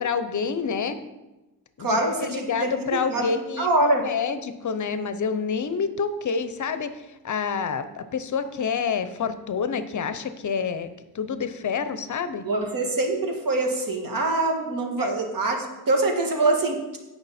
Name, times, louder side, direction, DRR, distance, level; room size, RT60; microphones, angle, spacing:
voice 1, 0.0-1.0 1.8-10.9 11.1-12.4 15.0-15.1, left 6 dB, 50° left, 11 dB, 0.7 m, -28 dB
voice 2, 1.8-4.0 12.4-15.6 15.9-16.8, right 2 dB, 60° right, 2 dB, 1.9 m, -24 dB
16.0 x 5.7 x 4.2 m, 1.0 s
wide cardioid pair, 135°, 38 cm